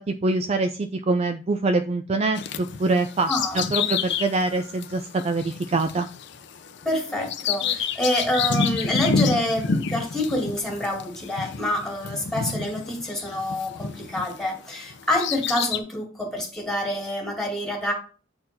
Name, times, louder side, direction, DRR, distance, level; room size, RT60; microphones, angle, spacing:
voice 1, 0.1-3.3 3.5-6.1, right 3 dB, 35° right, 7 dB, 0.4 m, -24 dB
Bird vocalization bird call bird song, 2.4-14.4 14.9-15.8, left 5 dB, 65° left, 0.6 m, -29 dB
voice 2, 3.3-4.0 6.8-17.9, left 1 dB, 5° left, 0 dB, 2.2 m, -27 dB
7.6 x 4.5 x 4.2 m, 0.38 s
head